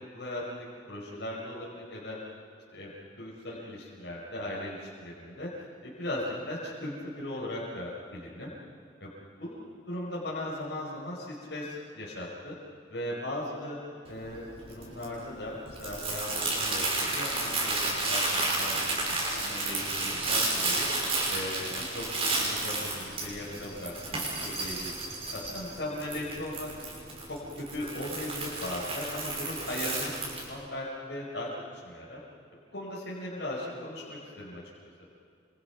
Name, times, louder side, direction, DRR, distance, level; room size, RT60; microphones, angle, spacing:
voice 1, 0.1-2.2 2.7-5.5 5.8-8.5 9.0-9.1 9.4-12.6 12.9-13.8 14.1-18.8 19.0-20.9 21.3-24.9 25.3-26.7 27.3-31.5 31.8-32.2 32.7-34.6, left 1 dB, 60° left, -6 dB, 5.2 m, -38 dB
Crumpling crinkling, 14.1-30.5, right 2 dB, 30° right, 6.2 m, -32 dB
28.5 x 26.5 x 6.0 m, 2.6 s
head